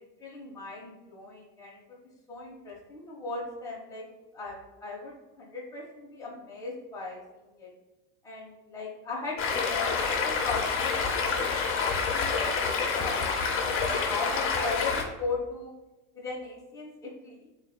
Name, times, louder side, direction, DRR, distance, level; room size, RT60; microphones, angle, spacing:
voice 1, 0.0-2.0 2.3-4.1 4.3-7.7 8.2-9.9 10.2-11.4 11.7-12.7 13.0-13.2 13.6-15.7 16.1-17.4, left 3 dB, 10° left, -5 dB, 1.0 m, -38 dB
Stream, 9.4-15.0, left 5 dB, 35° left, 0.7 m, -28 dB
7.1 x 2.6 x 2.2 m, 1.0 s
supercardioid pair, 120°, 36 cm